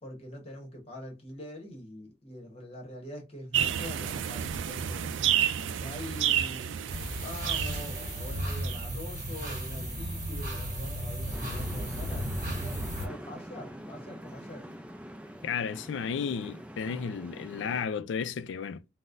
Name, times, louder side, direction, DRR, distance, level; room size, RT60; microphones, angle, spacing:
voice 1, 0.0-5.2 5.8-6.8 7.2-14.7, left 1 dB, 30° left, 1.0 m, -44 dB
sound 1, 3.5-8.8, right 9 dB, 80° right, 0.3 m, -30 dB
sound 2, 6.9-13.1, right 1 dB, 45° right, 1.0 m, -34 dB
sound 3, 11.3-17.9, equal, 5° right, 0.4 m, -44 dB
voice 2, 15.4-18.9, left 6 dB, 75° left, 0.3 m, -33 dB
4.0 x 2.1 x 2.5 m
head